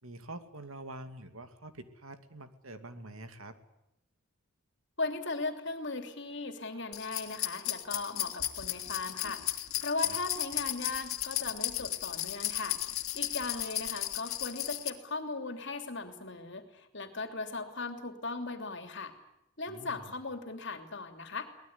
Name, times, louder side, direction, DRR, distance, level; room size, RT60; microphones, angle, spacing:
voice 1, 0.0-3.5 10.0-10.2 19.7-20.1, right 2 dB, 75° right, 8 dB, 2.5 m, -46 dB
voice 2, 5.0-9.4 9.8-12.8 13.1-19.1 19.6-21.5, left 3 dB, 55° left, 7 dB, 3.1 m, -38 dB
sound 1, 6.9-14.9, left 14 dB, 80° left, 2.3 m, -35 dB
23.5 x 19.5 x 9.7 m, 0.85 s
head